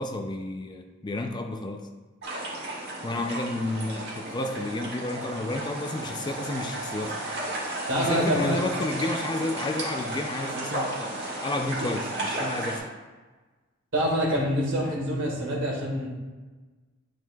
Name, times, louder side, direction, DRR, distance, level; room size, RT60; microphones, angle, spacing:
voice 1, 0.0-1.9 3.0-7.2 8.1-11.1 11.4-12.8, left 2 dB, 20° left, 4 dB, 0.4 m, -31 dB
sound 1, 2.2-12.8, right 2 dB, 55° right, 1.7 m, -34 dB
voice 2, 7.9-8.6 13.9-16.1, equal, 70° right, -2 dB, 1.8 m, -26 dB
9.1 x 4.5 x 2.3 m, 1.3 s
head